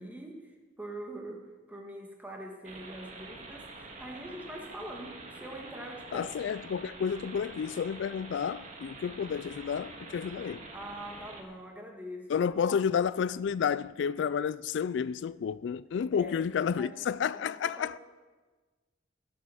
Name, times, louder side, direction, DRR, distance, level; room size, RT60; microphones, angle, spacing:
voice 1, 0.0-6.3 10.7-12.8 16.1-16.4 16.8-17.1 17.3-18.0, right 1 dB, 10° right, 1.8 m, -44 dB
sound 1, 2.6-11.4, right 3 dB, 40° right, 1.8 m, -47 dB
voice 2, 6.1-10.7 12.3-18.0, left 7 dB, 70° left, 0.3 m, -31 dB
18.0 x 7.1 x 6.4 m
head